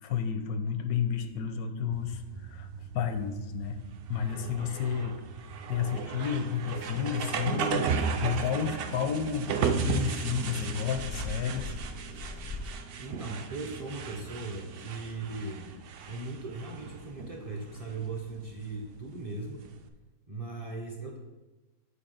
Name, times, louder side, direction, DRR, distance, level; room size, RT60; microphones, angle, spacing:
voice 1, 0.0-2.7 2.9-3.8 4.1-5.2 5.7-11.8, left 7 dB, 85° left, 8 dB, 1.1 m, -31 dB
sound 1, 1.9-19.9, right 6 dB, 80° right, 0.5 m, -36 dB
sound 2, 6.5-12.7, left 4 dB, 70° left, 0.5 m, -44 dB
voice 2, 13.0-15.8 16.1-19.7 20.3-21.2, right 3 dB, 35° right, 0 dB, 0.6 m, -38 dB
7.9 x 2.9 x 5.7 m, 1.1 s
omnidirectional pair, 1.5 m